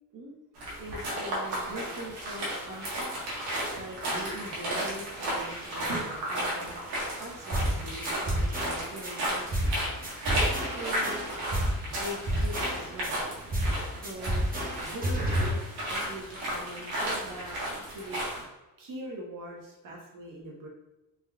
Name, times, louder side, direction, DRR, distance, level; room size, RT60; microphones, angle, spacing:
sound 1, 0.6-18.4, right 1 dB, 85° right, 1.4 m, -34 dB
voice 1, 0.8-3.1 3.8-6.8 7.1-9.7 10.4-11.3 11.6-13.2 13.9-18.3 18.8-20.7, right 1 dB, 60° right, -2 dB, 1.2 m, -42 dB
sound 2, 7.5-7.8 8.0-9.1 9.5-9.8 10.0-11.8 12.0-13.1 13.5-13.8 14.0-15.5, equal, 25° right, 0.9 m, -29 dB
3.6 x 2.9 x 2.3 m, 1.0 s
cardioid pair, 90°, 37 cm